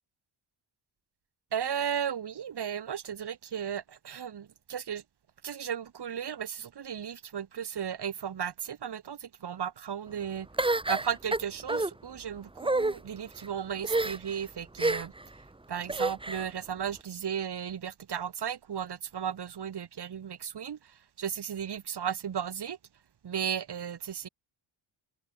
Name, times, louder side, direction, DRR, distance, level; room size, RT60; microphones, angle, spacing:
voice 1, 1.5-5.0 5.4-10.5 10.9-15.1 15.7-20.8 21.2-22.8 23.2-24.3, right 8 dB, 55° right, 6.3 m, -35 dB
sound 1, 10.6-11.9 12.6-12.9 13.8-14.3 14.8-15.2 15.9-16.5, right 2 dB, 10° right, 2.5 m, -28 dB
wide cardioid pair, 180°, 48 cm